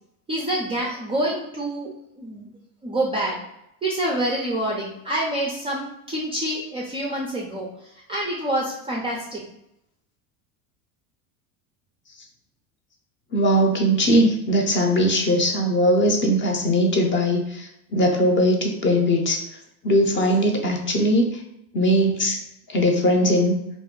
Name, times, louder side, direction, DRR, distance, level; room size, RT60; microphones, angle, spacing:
voice 1, 0.3-2.5 2.8-3.4 3.8-9.4, right 1 dB, 15° right, -3 dB, 0.3 m, -27 dB
voice 2, 13.3-19.4 19.8-21.4 21.7-22.4 22.7-23.6, equal, 25° left, 2 dB, 0.6 m, -20 dB
2.5 x 2.2 x 3.5 m, 0.81 s
supercardioid pair, 100°, 43 cm